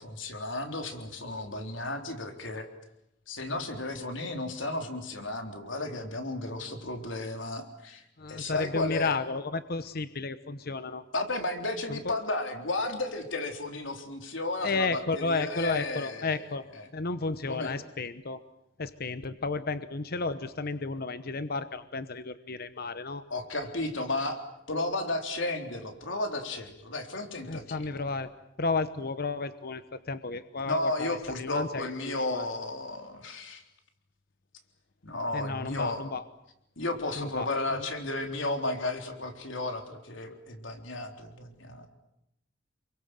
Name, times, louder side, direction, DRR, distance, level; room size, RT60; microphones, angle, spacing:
voice 1, 0.0-2.7 3.3-9.2 11.1-16.5 16.8-16.9 17.5-17.7 23.3-24.4 24.7-28.0 30.7-33.6 35.0-36.0 36.8-41.9, left 2 dB, 80° left, 5 dB, 3.8 m, -33 dB
voice 2, 8.2-11.0 11.9-12.1 14.6-16.6 16.9-18.4 18.8-23.2 27.5-28.3 28.6-32.4 35.3-36.2 37.2-37.8, left 3 dB, 55° left, 12 dB, 1.0 m, -32 dB
29.5 x 23.0 x 7.8 m, 0.83 s
head